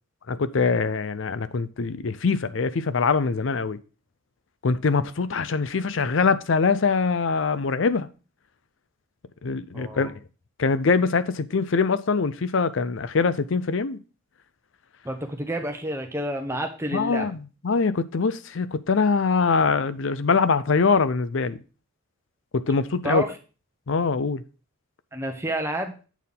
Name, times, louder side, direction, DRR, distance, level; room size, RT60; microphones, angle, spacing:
voice 1, 0.3-3.8 4.6-8.1 9.4-10.1 10.6-14.0 16.9-21.6 22.5-23.2 23.9-24.4, left 4 dB, 65° left, 0.5 m, -23 dB
voice 2, 9.7-10.1 15.0-17.3 23.0-23.3 25.1-25.9, right 1 dB, 15° right, 1.0 m, -29 dB
8.2 x 4.5 x 5.3 m
head